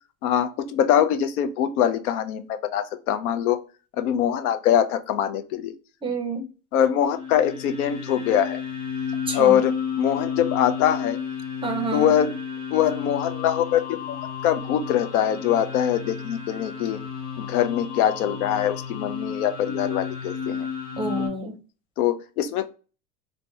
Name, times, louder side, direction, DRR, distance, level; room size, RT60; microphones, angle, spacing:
voice 1, 0.2-3.6 4.0-5.7 6.7-8.6 9.3-11.2 11.9-12.3 12.7-17.0 17.4-20.7 22.0-22.7, left 10 dB, 85° left, 10 dB, 0.6 m, -23 dB
voice 2, 6.0-6.4 9.3-9.6 11.6-12.1 21.0-21.6, right 3 dB, 15° right, 5 dB, 0.5 m, -28 dB
sound 1, 7.0-21.3, left 7 dB, 20° left, 0.8 m, -32 dB
3.3 x 2.1 x 2.6 m, 0.35 s
supercardioid pair, 115°, 42 cm